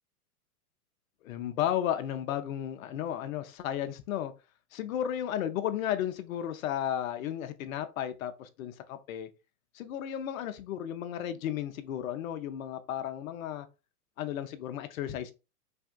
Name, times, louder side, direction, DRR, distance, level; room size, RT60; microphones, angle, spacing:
voice 1, 1.2-4.3 4.7-9.3 9.7-13.7 14.2-15.3, left 10 dB, 60° left, 0.6 m, -34 dB
3.4 x 3.3 x 2.2 m
hypercardioid pair, 100°, 46 cm